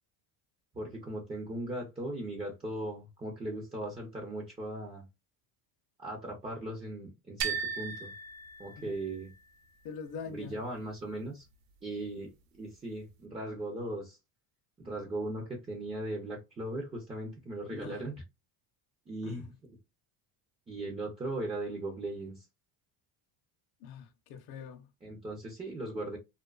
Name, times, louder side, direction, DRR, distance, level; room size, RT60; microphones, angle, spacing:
voice 1, 0.7-5.0 6.0-8.1 8.6-9.3 10.3-11.4 11.8-14.2 14.8-18.2 19.1-19.5 20.7-22.4 25.0-26.2, right 1 dB, 15° right, 0.3 m, -38 dB
sound 1, 7.4-9.3, right 6 dB, 65° right, 0.7 m, -37 dB
voice 2, 9.8-10.6 17.7-18.0 19.2-19.4 23.8-24.9, left 6 dB, 50° left, 0.5 m, -44 dB
2.4 x 2.3 x 2.2 m
cardioid pair, 130°, 49 cm